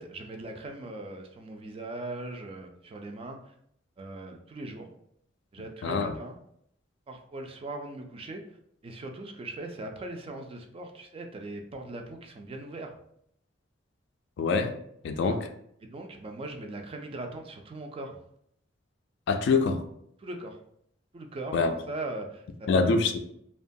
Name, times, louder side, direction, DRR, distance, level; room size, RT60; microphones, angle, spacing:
voice 1, 0.0-3.5 4.0-4.9 5.5-6.4 7.1-8.4 8.8-12.9 15.2-15.4 15.9-18.2 20.2-20.6 21.1-22.9, right 2 dB, 30° right, 3 dB, 0.3 m, -39 dB
voice 2, 5.8-6.1 14.4-14.7 15.0-15.4 19.3-19.8 21.5-21.7 22.7-23.2, left 4 dB, 65° left, 7 dB, 0.3 m, -24 dB
2.8 x 2.2 x 2.6 m, 0.70 s
head